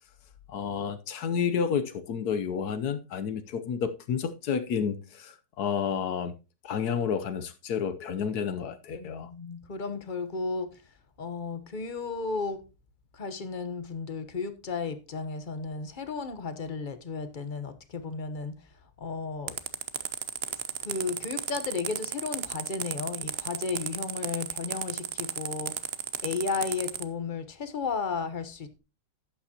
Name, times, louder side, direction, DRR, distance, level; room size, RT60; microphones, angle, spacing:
voice 1, 0.5-6.4 6.6-9.3, left 7 dB, 65° left, 1.2 m, -30 dB
voice 2, 9.0-12.6 13.1-18.7 19.0-19.6 20.8-25.8 26.2-28.8, left 4 dB, 40° left, 0.8 m, -34 dB
sound 1, 19.5-27.0, right 9 dB, 60° right, 0.6 m, -33 dB
12.0 x 8.9 x 2.8 m
omnidirectional pair, 2.0 m